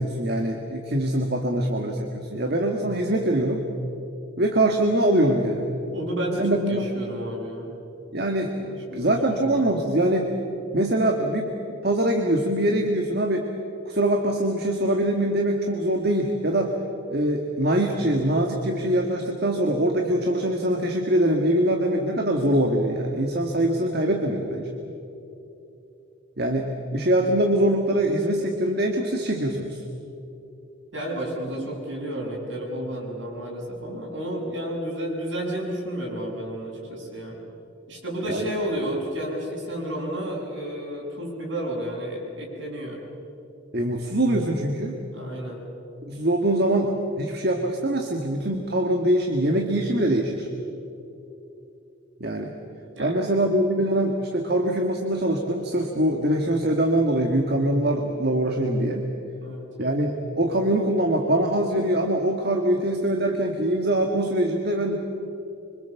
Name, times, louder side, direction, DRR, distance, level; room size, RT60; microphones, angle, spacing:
voice 1, 0.0-3.6 4.4-5.7 6.4-6.9 8.1-10.3 10.7-13.5 13.8-16.7 17.1-24.7 26.4-29.8 38.3-38.5 43.7-45.0 46.1-50.5 52.2-52.5 53.0-59.1 59.8-65.1, right 1 dB, 50° right, 2 dB, 1.8 m, -23 dB
voice 2, 5.9-7.7 8.7-9.4 30.9-37.4 37.9-43.0 45.1-45.6 52.9-53.3 59.4-59.7, right 1 dB, 70° right, -2 dB, 7.6 m, -31 dB
26.5 x 25.0 x 7.2 m, 2.9 s
head